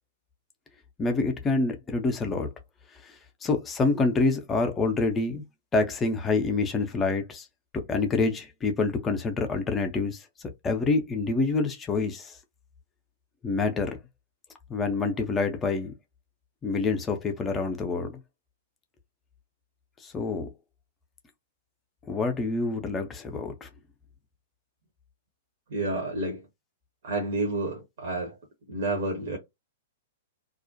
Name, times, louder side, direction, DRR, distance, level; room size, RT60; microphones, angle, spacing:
voice 1, 1.0-2.5 3.0-5.4 5.7-7.5 7.9-10.3 10.6-12.4 13.4-14.0 14.7-15.9 16.6-18.2 20.0-20.5 22.1-23.7, left 3 dB, 15° left, 0.5 m, -27 dB
voice 2, 25.7-26.5 27.0-28.4 28.7-29.4, right 2 dB, 55° right, 0.7 m, -30 dB
2.4 x 2.0 x 2.6 m
figure-of-eight pair, 105°, 0 cm